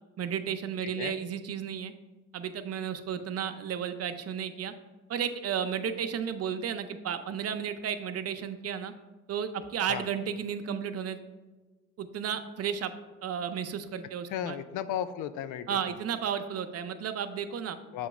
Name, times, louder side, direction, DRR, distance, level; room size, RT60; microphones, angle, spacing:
voice 1, 0.2-1.9 2.3-4.7 5.1-8.9 9.3-11.2 12.0-12.9 13.2-14.6 15.7-17.8, right 8 dB, 55° right, 9 dB, 0.5 m, -33 dB
voice 2, 0.8-1.1 9.9-10.1 14.3-15.8 17.9-18.1, left 10 dB, 85° left, 12 dB, 0.5 m, -34 dB
7.1 x 3.0 x 4.8 m, 1.2 s
cardioid pair, 90°, 30 cm